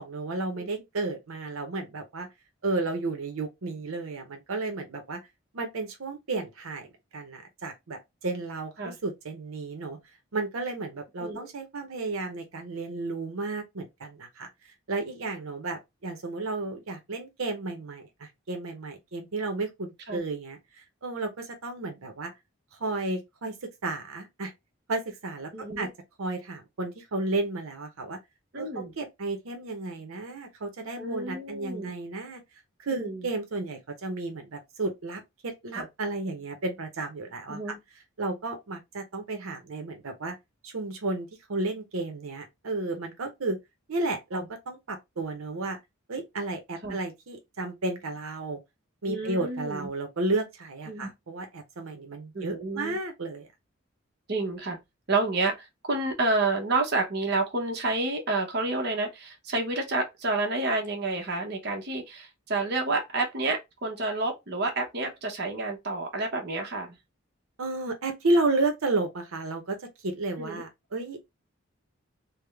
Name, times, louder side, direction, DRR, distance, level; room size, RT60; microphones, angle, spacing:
voice 1, 0.0-2.3 2.6-5.2 5.5-10.0 10.3-14.5 14.9-22.3 22.7-24.5 24.9-25.9 26.2-28.2 28.6-32.4 32.8-37.7 38.2-40.4 40.6-43.6 43.9-45.8 46.1-48.6 49.0-53.5 67.6-71.2, right 2 dB, 85° right, 0.7 m, -32 dB
voice 2, 25.5-25.9 28.5-28.9 31.0-31.9 32.9-33.2 35.7-35.9 37.5-37.8 44.3-44.4 46.8-47.0 49.1-49.9 50.9-51.1 52.3-53.0 54.3-54.8 55.1-67.0 70.4-70.6, right 2 dB, 50° right, 0.9 m, -29 dB
3.4 x 2.1 x 3.3 m
head